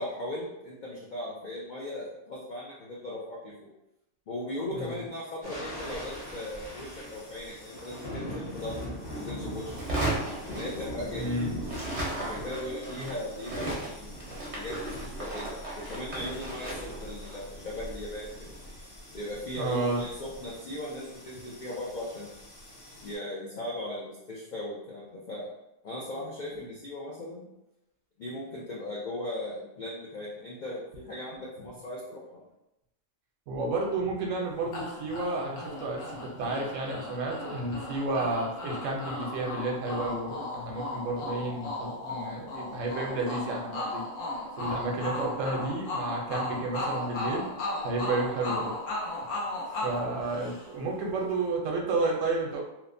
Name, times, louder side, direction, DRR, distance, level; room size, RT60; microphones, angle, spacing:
voice 1, 0.0-3.7 4.3-9.7 10.5-11.3 12.2-14.2 14.5-18.5 19.1-22.3 23.0-25.5 25.8-27.5 28.2-32.4, left 1 dB, 70° left, -4 dB, 0.4 m, -38 dB
sound 1, 5.4-23.1, equal, 40° left, 0.7 m, -42 dB
sound 2, 9.7-11.3 11.6-18.8, right 1 dB, 45° right, 0.6 m, -36 dB
voice 2, 11.1-11.5 13.0-13.1 19.6-20.0 33.5-44.0 44.6-47.5 47.8-48.7 49.8-52.6, right 2 dB, 75° right, 0 dB, 0.9 m, -31 dB
sound 3, 34.7-50.9, left 2 dB, 90° left, 1.1 m, -36 dB
3.0 x 2.1 x 2.5 m, 0.89 s
omnidirectional pair, 1.3 m